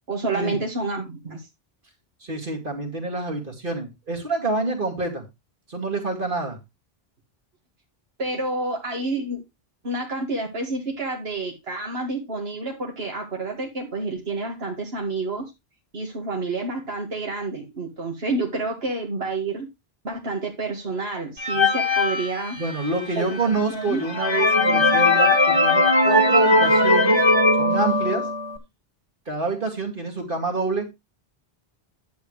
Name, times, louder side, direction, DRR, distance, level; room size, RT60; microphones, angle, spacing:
voice 1, 0.1-1.5 8.2-9.4 9.8-15.5 15.9-19.7 20.0-22.6 23.2-24.0, right 3 dB, 75° right, 2.3 m, -29 dB
voice 2, 2.2-5.3 5.7-6.6 22.6-27.2 27.6-28.3 29.3-30.9, right 3 dB, 55° right, 2.6 m, -27 dB
sound 1, 21.4-23.0 23.6-23.7 24.0-28.6, left 2 dB, 25° left, 1.9 m, -19 dB
11.0 x 8.1 x 3.2 m
omnidirectional pair, 1.0 m